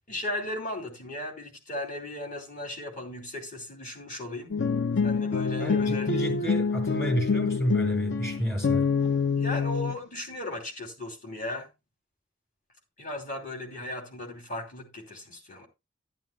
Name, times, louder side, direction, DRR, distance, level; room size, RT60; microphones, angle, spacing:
voice 1, 0.1-4.5 5.0-6.5 9.4-11.7 13.0-15.7, left 1 dB, 40° left, 2.9 m, -36 dB
sound 1, 4.5-10.0, left 5 dB, 55° left, 0.5 m, -26 dB
voice 2, 5.6-8.8, equal, 15° left, 3.4 m, -31 dB
12.0 x 11.5 x 2.2 m
head